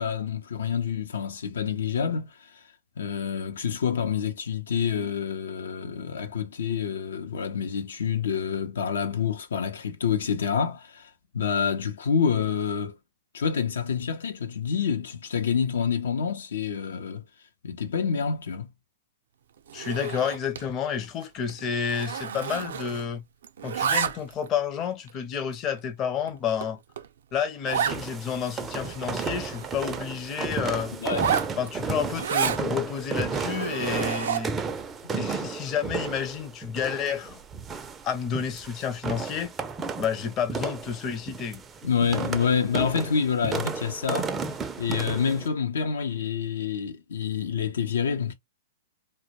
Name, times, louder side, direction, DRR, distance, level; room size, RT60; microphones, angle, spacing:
voice 1, 0.0-2.6 3.0-13.0 13.3-17.2 17.6-18.7 31.0-31.4 41.8-44.4 44.8-48.3, left 6 dB, 80° left, 0.5 m, -27 dB
voice 2, 19.7-23.2 23.6-26.8 27.3-30.9 31.6-34.5 35.1-37.4 38.0-39.5 40.0-41.6, left 7 dB, 30° left, 0.6 m, -30 dB
Zipper (clothing), 19.7-20.7 21.0-21.2 21.5-23.2 23.4-24.5 25.1-25.2 25.8-25.9 26.3-26.4 26.6-26.7 27.0-27.1 27.7-28.0 28.5-28.6 28.8-30.1 31.0-32.6 33.2-34.6, right 8 dB, 75° right, 0.4 m, -30 dB
sound 1, 27.7-45.5, right 5 dB, 15° right, 0.4 m, -33 dB
2.2 x 2.1 x 2.8 m
hypercardioid pair, 130°, 0 cm